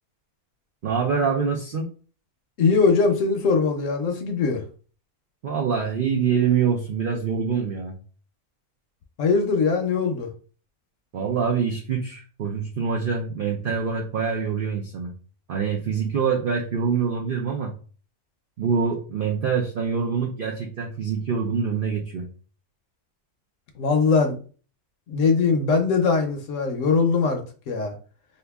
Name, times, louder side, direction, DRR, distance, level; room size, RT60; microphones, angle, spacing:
voice 1, 0.8-1.9 5.4-8.0 11.1-15.1 15.5-17.7 18.6-22.3, right 6 dB, 75° right, 1 dB, 0.5 m, -25 dB
voice 2, 2.6-4.6 9.2-10.3 23.8-24.4 25.1-27.9, left 4 dB, 65° left, 5 dB, 0.9 m, -21 dB
2.8 x 2.5 x 3.4 m, 0.39 s
omnidirectional pair, 1.6 m